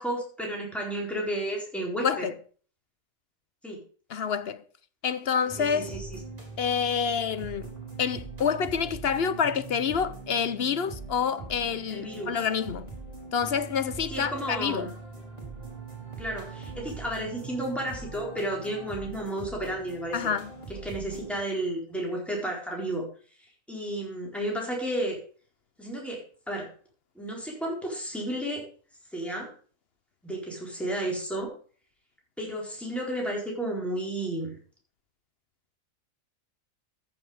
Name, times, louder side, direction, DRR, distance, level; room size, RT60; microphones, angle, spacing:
voice 1, 0.0-2.3 3.6-3.8 5.6-6.2 11.9-12.4 14.1-14.9 16.2-20.2 20.7-23.1 23.7-25.2 25.8-26.7 27.2-28.6 29.1-29.5 30.2-31.5 32.4-34.6, right 1 dB, ahead, 4.2 m, -32 dB
voice 2, 4.1-4.6 5.0-5.9 6.6-7.7 8.0-12.9 13.3-14.9 20.1-20.5, left 7 dB, 55° left, 0.9 m, -28 dB
sound 1, 5.5-21.4, right 3 dB, 30° right, 3.8 m, -42 dB
14.0 x 7.0 x 4.9 m
omnidirectional pair, 1.4 m